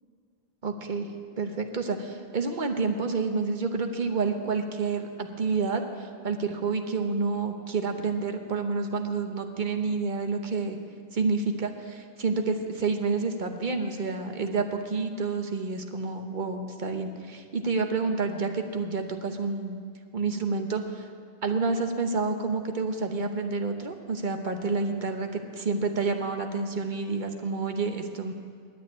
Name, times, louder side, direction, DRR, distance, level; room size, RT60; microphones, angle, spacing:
voice 1, 0.6-1.1 1.4-10.8 11.1-19.8 20.1-21.1 21.4-28.3, right 4 dB, 45° right, 5 dB, 1.0 m, -29 dB
9.7 x 8.7 x 9.4 m, 2.1 s
omnidirectional pair, 1.2 m